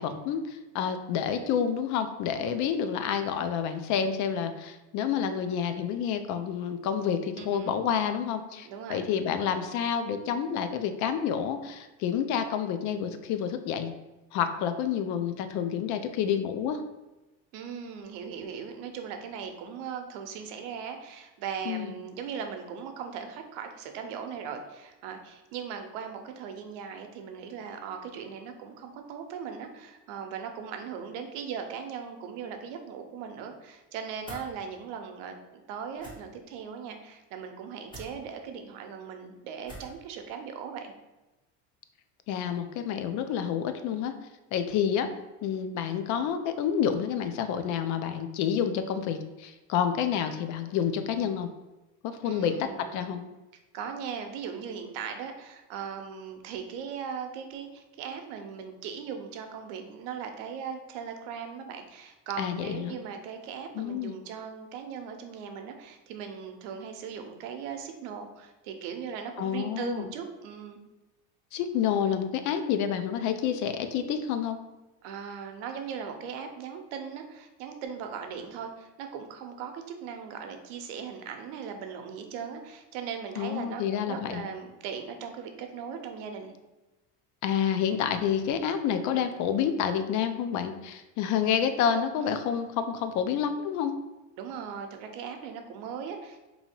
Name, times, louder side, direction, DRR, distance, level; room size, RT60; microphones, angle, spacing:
voice 1, 0.0-13.9 14.3-16.8 21.7-21.9 42.3-44.1 44.5-45.1 45.4-51.5 52.0-53.2 62.4-63.0 63.7-64.1 69.4-70.1 71.5-74.6 83.4-84.4 87.4-93.9, left 8 dB, 60° left, 9 dB, 0.4 m, -29 dB
voice 2, 7.3-7.9 8.6-9.0 17.5-40.9 52.2-53.1 53.7-70.8 75.0-86.5 94.4-96.5, right 7 dB, 85° right, 5 dB, 0.7 m, -39 dB
sound 1, 34.2-34.5 35.9-36.1 37.9-38.1 39.6-40.0, equal, 15° left, 1.2 m, -43 dB
2.8 x 2.7 x 4.3 m, 1.1 s
cardioid pair, 140°, 34 cm